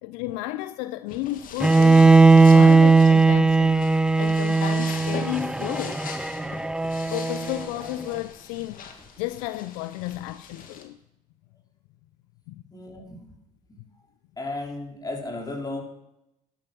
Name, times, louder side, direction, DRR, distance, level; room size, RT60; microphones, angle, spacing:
voice 1, 0.0-3.8 4.2-6.0 7.1-8.8 9.2-11.0 12.5-12.6, left 15 dB, 70° left, 0.5 m, -32 dB
sound 1, 1.1-10.8, left 6 dB, 50° left, 2.1 m, -41 dB
Bowed string instrument, 1.6-7.6, right 3 dB, 5° right, 0.5 m, -17 dB
voice 2, 12.7-13.2 14.4-15.8, left 2 dB, 20° left, 3.9 m, -34 dB
12.0 x 10.5 x 6.0 m
hypercardioid pair, 70°, 18 cm